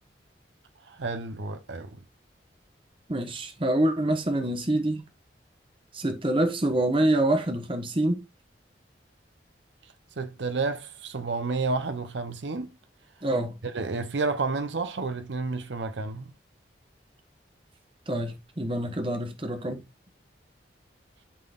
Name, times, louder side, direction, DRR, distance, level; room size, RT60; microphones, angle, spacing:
voice 1, 0.8-2.0 10.2-12.7 13.7-16.3, right 3 dB, 85° right, 0.7 m, -30 dB
voice 2, 3.1-5.0 5.9-8.2 13.2-13.6 18.1-19.8, right 1 dB, 30° right, 1.1 m, -26 dB
11.5 x 3.8 x 2.4 m
head